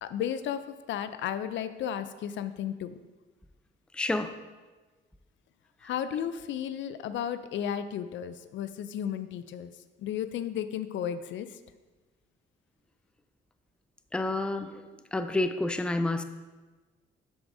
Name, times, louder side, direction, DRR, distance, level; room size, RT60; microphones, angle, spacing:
voice 1, 0.0-3.0 5.8-9.7 10.0-11.6, left 9 dB, 70° left, 12 dB, 0.4 m, -34 dB
voice 2, 3.9-4.3 14.1-14.7 15.1-16.2, left 2 dB, 5° left, 9 dB, 0.4 m, -29 dB
12.0 x 4.7 x 2.6 m, 1.3 s
cardioid pair, 90°, 20 cm